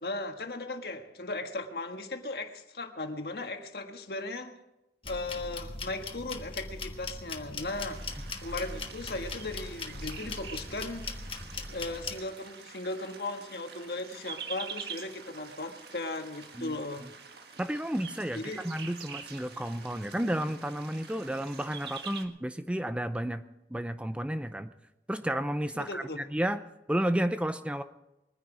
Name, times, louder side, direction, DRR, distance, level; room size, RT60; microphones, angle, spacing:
voice 1, 0.0-4.5 5.0-8.0 8.4-11.1 11.7-17.1 18.3-18.6 25.7-26.2, left 2 dB, 65° left, 5 dB, 1.6 m, -37 dB
sound 1, 5.0-12.2, left 3 dB, 30° left, 1.3 m, -40 dB
sound 2, 7.6-22.2, right 6 dB, 70° right, 1.5 m, -46 dB
voice 2, 17.6-23.4 23.7-24.7 25.1-26.6 26.9-27.8, right 1 dB, 5° right, 10 dB, 0.5 m, -32 dB
22.0 x 10.0 x 5.0 m, 0.93 s
head